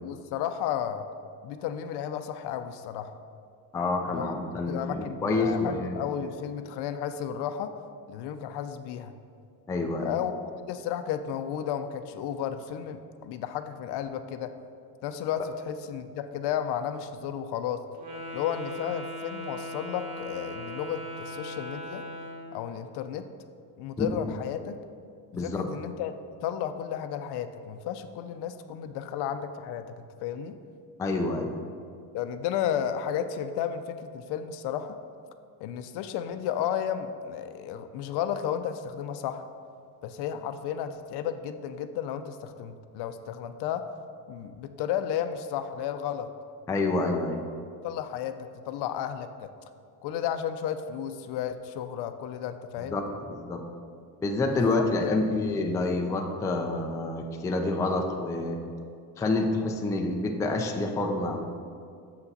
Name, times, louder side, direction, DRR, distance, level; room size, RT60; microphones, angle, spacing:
voice 1, 0.0-1.0 1.4-3.1 4.1-4.3 4.7-7.7 8.1-9.1 10.0-10.3 10.7-14.5 15.0-17.8 18.3-22.0 22.5-23.3 23.8-24.8 25.3-26.1 26.4-30.6 32.1-35.0 35.6-39.5 40.0-43.8 44.3-46.3 47.8-49.5 50.0-53.0 54.5-55.2, left 9 dB, 60° left, 9 dB, 0.6 m, -33 dB
voice 2, 3.7-6.1 9.7-10.2 24.0-24.1 25.3-25.7 31.0-31.6 46.7-47.4 52.9-53.6 54.2-58.6 59.2-61.5, left 2 dB, 10° left, 3 dB, 0.3 m, -28 dB
Wind instrument woodwind instrument, 17.9-22.5, equal, 75° right, 1.8 m, -39 dB
6.8 x 5.7 x 4.0 m, 2.3 s
supercardioid pair, 110°, 46 cm